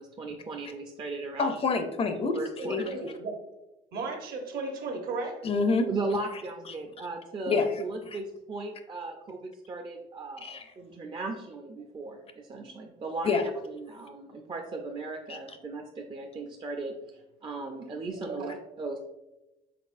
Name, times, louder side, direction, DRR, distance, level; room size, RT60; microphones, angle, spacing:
voice 1, 0.0-1.5 2.3-2.9 5.9-13.3 13.6-17.0 17.4-19.0, right 3 dB, 30° right, 3 dB, 0.4 m, -37 dB
voice 2, 1.4-2.8 5.4-5.9 7.5-7.7 8.1-8.2 10.4-10.6 13.2-13.4 15.3-15.4, left 4 dB, 35° left, 7 dB, 0.5 m, -27 dB
voice 3, 2.6-3.4 3.9-5.5 18.1-18.5, right 3 dB, 65° right, 3 dB, 0.9 m, -35 dB
4.1 x 3.8 x 2.5 m, 0.98 s
cardioid pair, 110°, 17 cm